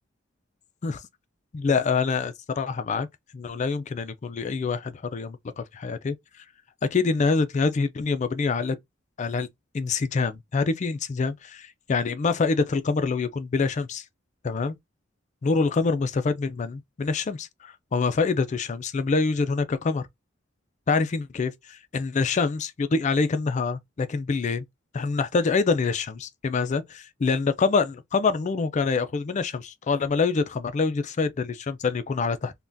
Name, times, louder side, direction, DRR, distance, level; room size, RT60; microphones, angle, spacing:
voice 1, 1.5-3.1 3.3-6.2 6.9-8.8 9.2-9.5 9.7-14.0 14.4-14.8 15.4-20.1 20.9-24.6 24.9-32.5, left 4 dB, 40° left, 0.4 m, -25 dB
3.4 x 2.2 x 2.5 m
head